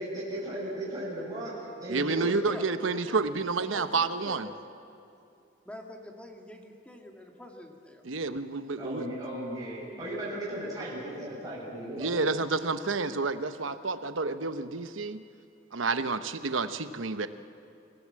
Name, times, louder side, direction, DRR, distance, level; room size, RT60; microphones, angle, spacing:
voice 1, 0.0-1.5 1.8-2.3 8.8-12.5, right 1 dB, 20° right, -7 dB, 6.9 m, -36 dB
voice 2, 1.9-4.5 8.0-9.0 12.0-15.2 15.7-17.3, right 4 dB, 85° right, 11 dB, 1.0 m, -29 dB
voice 3, 3.7-4.4 5.6-8.0, left 1 dB, 5° left, 2 dB, 2.0 m, -45 dB
29.0 x 16.5 x 7.6 m, 2.7 s
head